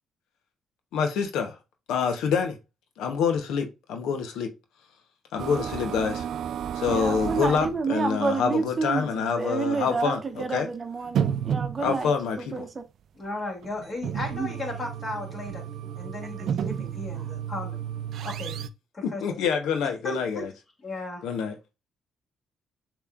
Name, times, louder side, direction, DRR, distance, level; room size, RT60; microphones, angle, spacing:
voice 1, 0.9-1.5 1.9-2.5 3.0-4.5 5.3-6.3 6.7-10.7 11.8-12.7 19.2-20.5 21.2-21.5, left 6 dB, 85° left, 0.8 m, -26 dB
sound 1, 5.4-7.8 8.6-8.7 9.1-9.2 10.2-10.3 11.0-12.1 13.6-18.7, right 8 dB, 70° right, 0.4 m, -32 dB
voice 2, 6.9-12.1 12.5-12.7 14.3-14.5, right 4 dB, 35° right, 0.7 m, -29 dB
voice 3, 13.1-15.6 15.9-17.8 18.2-18.6 18.9-19.2 20.0-20.4 20.8-21.2, left 2 dB, 30° left, 2.3 m, -35 dB
6.8 x 3.0 x 2.4 m
cardioid pair, 90°, 0 cm